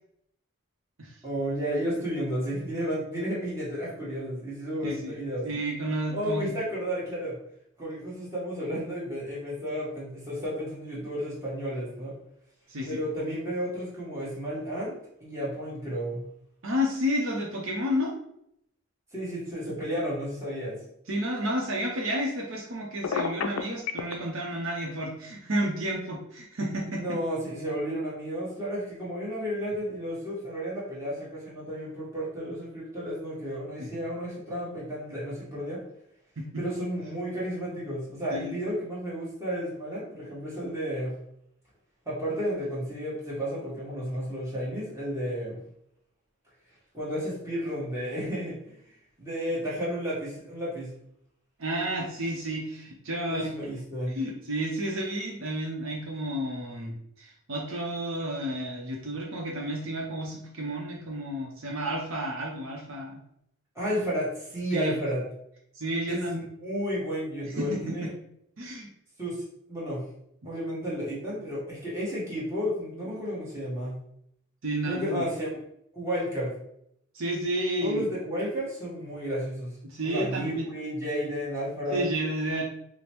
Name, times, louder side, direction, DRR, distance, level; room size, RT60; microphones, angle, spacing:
voice 1, 1.2-5.5 6.1-7.4 7.8-12.1 12.8-16.2 19.1-20.8 26.9-35.8 36.6-41.1 42.0-45.6 46.9-48.8 49.2-50.9 53.3-54.2 63.7-65.2 66.1-68.1 69.2-70.1 70.4-74.0 74.8-75.5 75.9-76.6 77.8-79.8 80.0-82.1, equal, 15° right, -8 dB, 1.2 m, -32 dB
voice 2, 4.8-5.2 5.4-6.5 12.7-13.0 16.6-18.1 21.1-27.2 33.8-33.9 36.4-36.6 38.3-38.6 51.6-53.5 54.1-63.2 64.7-64.9 65.7-66.4 67.4-68.1 68.6-68.9 74.6-75.2 77.1-78.0 79.8-80.7 81.9-82.6, equal, 65° right, -2 dB, 0.7 m, -31 dB
Telephone, 23.0-24.1, left 6 dB, 70° left, 0.4 m, -29 dB
5.0 x 2.1 x 3.0 m, 0.74 s
head